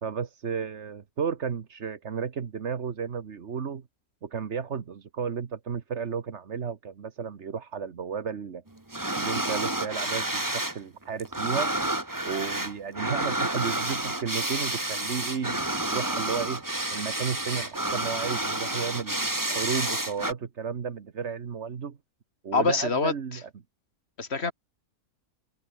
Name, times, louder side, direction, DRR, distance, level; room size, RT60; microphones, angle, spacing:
voice 1, 0.0-3.8 4.2-8.6 9.1-11.7 12.2-16.6 16.9-19.2 19.5-22.0 22.4-23.4, right 6 dB, 50° right, 1.5 m, -33 dB
sound 1, 8.9-10.8 11.0-20.3, right 1 dB, 15° right, 1.8 m, -30 dB
voice 2, 22.5-23.4 24.2-24.5, left 4 dB, 45° left, 2.2 m, -26 dB
open air
omnidirectional pair, 1.6 m